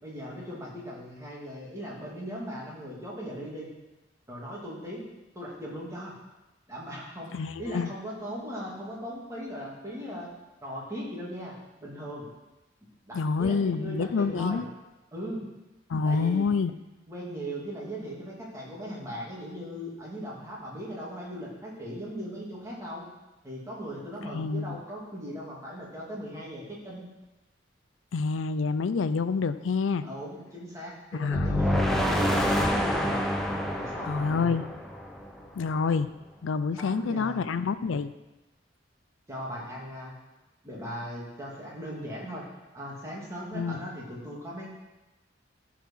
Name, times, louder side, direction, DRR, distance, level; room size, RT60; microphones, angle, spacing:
voice 1, 0.0-3.7 4.3-5.0 5.3-6.1 6.7-10.3 10.6-11.5 11.8-12.3 13.1-14.6 15.1-15.4 16.1-16.5 17.1-23.1 23.4-27.1 30.0-33.1 33.7-34.6 36.8-37.4 39.3-40.1 40.6-42.5 42.7-44.7, equal, 15° right, -5 dB, 2.6 m, -38 dB
voice 2, 7.3-7.9 13.1-14.7 15.9-16.7 24.2-24.8 28.1-30.0 31.1-32.1 34.0-34.7 35.5-36.1 36.4-38.1 43.5-43.9, left 5 dB, 85° left, 13 dB, 0.4 m, -28 dB
sound 1, 31.3-35.4, equal, ahead, 0.9 m, -27 dB
14.0 x 4.7 x 5.6 m, 1.0 s
head